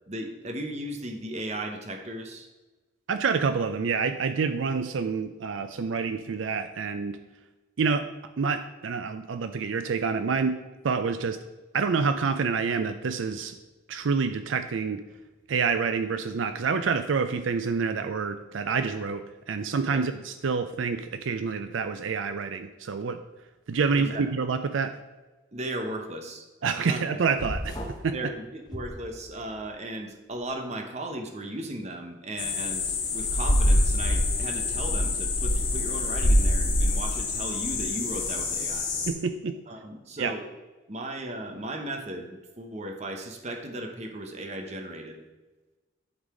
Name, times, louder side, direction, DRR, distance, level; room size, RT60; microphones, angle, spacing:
voice 1, 0.1-2.5 19.9-20.0 24.0-24.2 25.5-26.4 26.9-27.0 28.1-38.9 39.7-40.4 40.9-45.2, right 1 dB, 35° right, 4 dB, 1.0 m, -36 dB
voice 2, 3.1-7.2 7.8-8.1 8.4-11.4 11.7-13.6 13.9-15.0 15.5-23.2 23.7-24.9 26.6-28.2 39.1-39.6 40.2-40.3, right 5 dB, 80° right, 9 dB, 0.5 m, -27 dB
sound 1, 27.4-28.1 28.7-29.6, equal, 20° left, 1.0 m, -36 dB
sound 2, 32.4-39.1, left 1 dB, 80° left, 2.5 m, -25 dB
11.5 x 4.0 x 4.9 m, 1.2 s
head